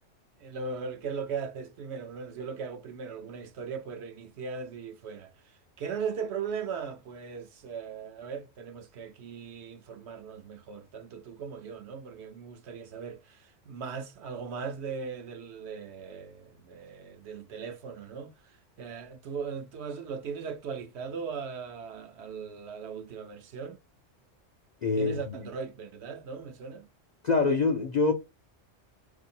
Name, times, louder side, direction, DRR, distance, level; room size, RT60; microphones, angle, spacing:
voice 1, 0.4-23.8 25.0-26.9, right 6 dB, 65° right, 0.8 m, -38 dB
voice 2, 24.8-25.2 27.2-28.1, left 4 dB, 55° left, 0.5 m, -24 dB
4.4 x 2.6 x 4.1 m
omnidirectional pair, 1.3 m